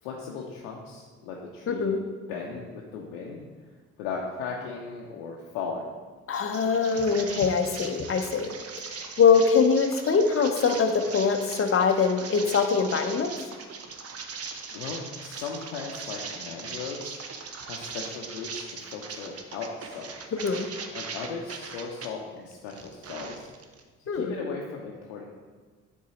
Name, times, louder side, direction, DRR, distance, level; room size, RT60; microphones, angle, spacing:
voice 1, 0.0-2.0 2.3-3.4 4.0-5.8 14.7-17.2 17.6-20.3 20.9-23.5 24.0-25.2, left 5 dB, 75° left, -2 dB, 0.7 m, -37 dB
voice 2, 1.7-2.0 6.3-8.5 9.2-13.3 20.4-20.7 24.1-24.3, left 5 dB, 35° left, 6 dB, 0.7 m, -23 dB
sound 1, 6.3-22.1 22.5-23.8, right 5 dB, 40° right, 0.8 m, -40 dB
7.4 x 3.8 x 4.2 m, 1.4 s
hypercardioid pair, 45°, 38 cm